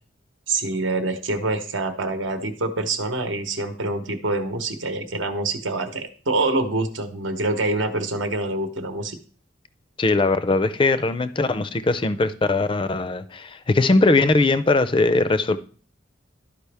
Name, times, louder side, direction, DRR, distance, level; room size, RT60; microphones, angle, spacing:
voice 1, 0.5-9.2, right 2 dB, 75° right, 1.0 m, -26 dB
voice 2, 10.0-15.6, left 3 dB, 25° left, 0.4 m, -20 dB
12.0 x 5.0 x 3.4 m
head